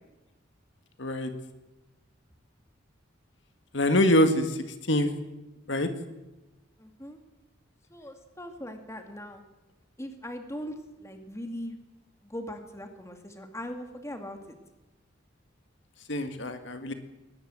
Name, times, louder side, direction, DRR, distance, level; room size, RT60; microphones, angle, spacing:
voice 1, 1.0-1.3 3.7-4.6 4.9-5.1 5.7-5.9 16.1-16.9, left 1 dB, 65° left, 8 dB, 1.9 m, -24 dB
voice 2, 6.8-7.2 7.9-9.4 10.0-11.8 12.2-14.4, equal, 15° left, 6 dB, 2.3 m, -40 dB
21.0 x 19.5 x 7.6 m, 1.0 s
head